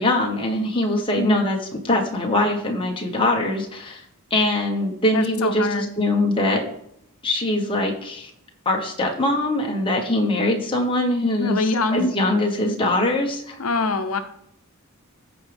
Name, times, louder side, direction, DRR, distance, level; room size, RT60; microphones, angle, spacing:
voice 1, 0.0-1.6 1.8-4.0 4.3-6.6 7.2-8.3 8.6-13.6, left 1 dB, 25° left, 1 dB, 1.5 m, -22 dB
voice 2, 5.1-5.9 11.4-12.1 13.6-14.2, left 3 dB, 85° left, 8 dB, 0.8 m, -23 dB
14.5 x 5.1 x 3.5 m, 0.72 s
head